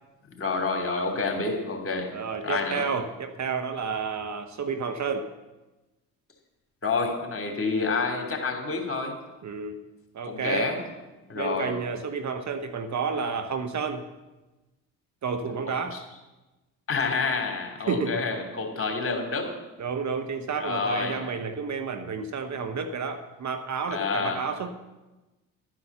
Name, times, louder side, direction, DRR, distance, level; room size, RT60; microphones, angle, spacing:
voice 1, 0.4-2.1 2.4-2.9 6.8-9.2 10.2-10.8 11.3-11.7 15.7-16.0 16.9-19.6 20.6-21.2 23.9-24.4, left 4 dB, 30° left, 3 dB, 3.2 m, -28 dB
voice 2, 2.1-5.3 9.4-9.8 10.1-10.7 11.3-14.1 15.2-16.0 17.9-18.2 19.8-24.7, right 5 dB, 40° right, 8 dB, 1.1 m, -30 dB
11.5 x 9.8 x 6.8 m, 1.1 s
hypercardioid pair, 50°, 44 cm